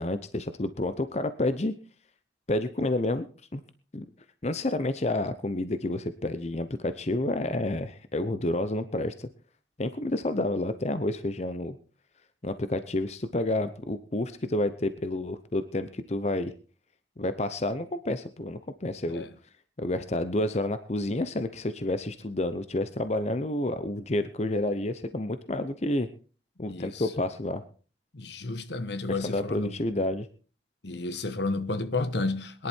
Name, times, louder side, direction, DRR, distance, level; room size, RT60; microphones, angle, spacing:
voice 1, 0.0-1.7 2.5-3.3 3.5-3.6 3.9-4.0 4.4-9.3 9.8-11.8 12.4-16.5 17.2-19.2 19.8-26.1 26.6-27.6 29.1-30.3, left 1 dB, 35° left, 0.8 m, -29 dB
voice 2, 26.6-27.1 28.1-29.7 30.8-32.7, left 3 dB, 70° left, 1.3 m, -32 dB
21.0 x 11.0 x 4.5 m
head